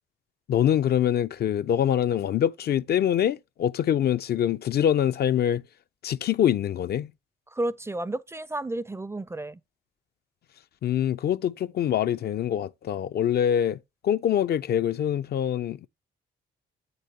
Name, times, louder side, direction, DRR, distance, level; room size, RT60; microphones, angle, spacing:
voice 1, 0.5-5.6 6.0-7.1 10.8-13.8 14.0-15.9, left 10 dB, 55° left, 0.4 m, -24 dB
voice 2, 7.5-9.6, right 2 dB, 15° right, 0.4 m, -32 dB
8.4 x 6.6 x 2.8 m
cardioid pair, 90°, 20 cm